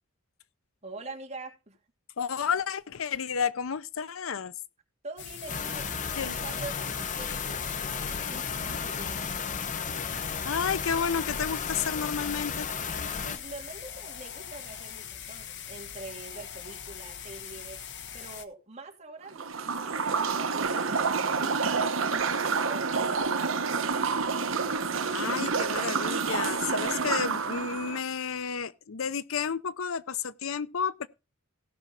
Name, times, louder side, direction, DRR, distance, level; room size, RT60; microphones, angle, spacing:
voice 1, 0.8-1.8 5.0-9.1 13.2-17.8 18.1-23.8, right 2 dB, 35° right, 2.9 m, -45 dB
voice 2, 2.2-4.5 6.2-6.4 10.4-12.7 25.1-31.1, left 6 dB, 75° left, 0.6 m, -31 dB
sound 1, 5.2-18.4, left 8 dB, 60° left, 1.1 m, -42 dB
sound 2, 5.5-13.4, left 6 dB, 40° left, 0.8 m, -34 dB
sound 3, 19.3-28.0, right 5 dB, 70° right, 1.1 m, -28 dB
16.5 x 6.1 x 4.2 m
head